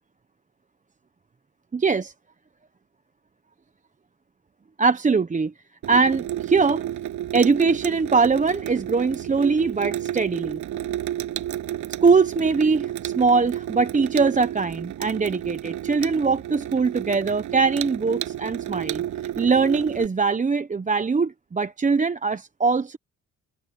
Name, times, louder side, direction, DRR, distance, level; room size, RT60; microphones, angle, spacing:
voice 1, 1.7-2.1 4.8-5.5 5.9-6.8 7.3-10.6 12.0-19.0 19.4-23.0, right 4 dB, 25° right, 1.0 m, -22 dB
Water tap faucet / Sink (filling or washing), 5.8-20.1, right 12 dB, 75° right, 7.6 m, -31 dB
cardioid pair, 90°, 30 cm